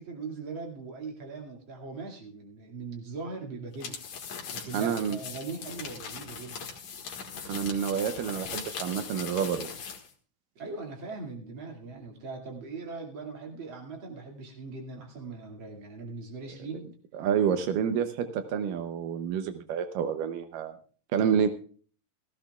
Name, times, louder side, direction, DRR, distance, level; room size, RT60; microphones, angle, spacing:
voice 1, 0.0-4.0 4.5-6.7 10.6-16.9 21.3-21.5, right 4 dB, 40° right, 0 dB, 2.9 m, -40 dB
sound 1, 3.7-10.1, left 6 dB, 65° left, 3.0 m, -40 dB
voice 2, 4.7-5.2 7.5-9.7 17.1-20.7 21.1-21.5, right 7 dB, 85° right, 8 dB, 2.4 m, -28 dB
17.5 x 15.0 x 2.4 m, 0.42 s
omnidirectional pair, 3.8 m